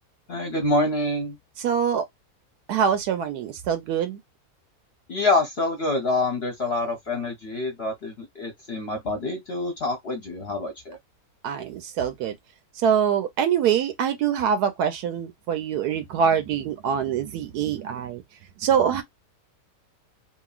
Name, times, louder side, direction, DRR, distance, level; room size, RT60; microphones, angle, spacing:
voice 1, 0.3-1.4 5.1-11.0, left 2 dB, 50° left, 0.9 m, -26 dB
voice 2, 1.6-2.0 2.7-4.2 11.4-12.3 12.8-18.2 18.6-19.0, right 8 dB, 85° right, 1.2 m, -24 dB
2.9 x 2.6 x 2.3 m
omnidirectional pair, 1.6 m